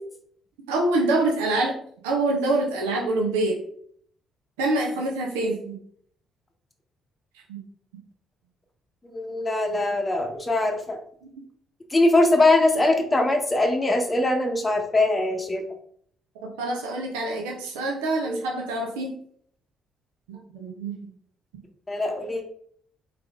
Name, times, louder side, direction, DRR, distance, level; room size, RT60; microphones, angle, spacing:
voice 1, 0.7-1.8 2.0-3.6 4.6-5.8 7.5-7.6 16.6-19.2 20.3-21.0, right 2 dB, 75° right, -1 dB, 0.8 m, -25 dB
voice 2, 9.0-11.0 11.9-15.6 21.9-22.4, left 2 dB, 25° left, 3 dB, 0.8 m, -22 dB
3.7 x 3.5 x 3.4 m, 0.62 s
figure-of-eight pair, 45°, 0 cm